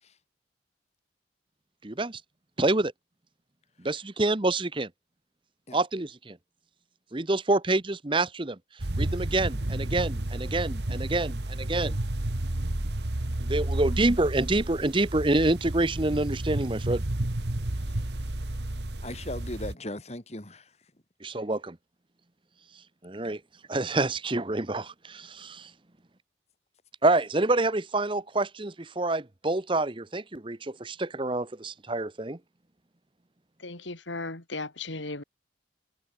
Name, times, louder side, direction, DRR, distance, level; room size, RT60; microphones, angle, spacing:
voice 1, 1.8-2.2 2.6-2.9 3.8-4.9 5.7-6.4 7.1-8.6 9.0-12.0 13.4-17.0 21.2-21.8 23.0-23.4 23.7-25.7 27.0-32.4, right 2 dB, 25° right, 0.9 m, -27 dB
sound 1, 8.8-19.7, right 1 dB, 65° right, 1.5 m, -31 dB
voice 2, 19.0-20.8, left 1 dB, 35° left, 2.7 m, -38 dB
voice 3, 33.6-35.2, left 3 dB, 80° left, 3.3 m, -36 dB
head